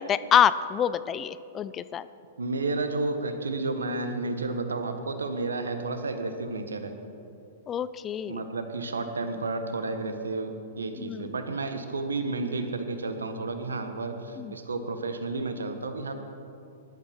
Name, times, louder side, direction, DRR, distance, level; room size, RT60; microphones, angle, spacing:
voice 1, 0.0-2.1 7.7-8.4 11.0-11.3 14.4-14.5, left 9 dB, 25° left, 15 dB, 0.5 m, -26 dB
voice 2, 2.4-6.9 8.3-16.2, right 3 dB, 80° right, 7 dB, 1.5 m, -31 dB
20.5 x 12.0 x 4.6 m, 2.7 s
figure-of-eight pair, 105°, 0 cm